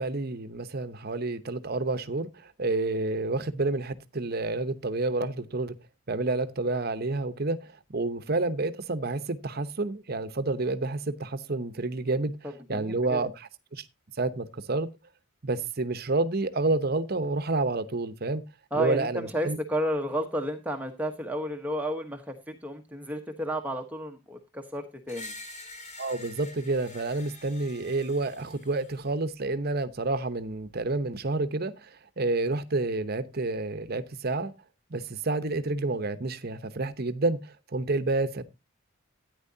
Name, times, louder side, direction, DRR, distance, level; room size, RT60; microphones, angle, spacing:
voice 1, 0.0-5.7 6.1-12.4 12.7-13.8 14.2-14.9 15.4-18.4 18.7-19.6 26.0-34.5 34.9-38.4, right 2 dB, 50° right, 1.0 m, -29 dB
voice 2, 12.4-13.2 18.7-25.3, equal, 10° right, 1.1 m, -32 dB
Screech, 25.1-29.1, left 2 dB, 35° left, 2.4 m, -46 dB
13.5 x 9.7 x 2.7 m
head